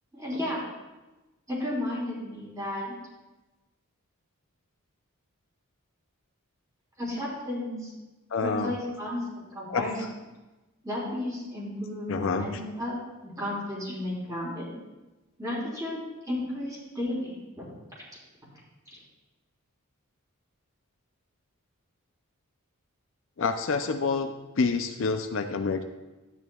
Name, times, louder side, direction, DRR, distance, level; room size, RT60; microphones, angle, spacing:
voice 1, 0.1-0.6 1.5-2.9 7.0-7.9 8.4-10.1 10.8-14.7 15.4-16.0 16.2-17.6 18.9-19.0, left 1 dB, 15° right, -6 dB, 3.5 m, -33 dB
voice 2, 8.3-8.7 9.7-9.9 12.1-12.5 23.4-25.8, left 4 dB, 60° left, 6 dB, 0.5 m, -27 dB
12.0 x 9.6 x 2.4 m, 1.1 s
head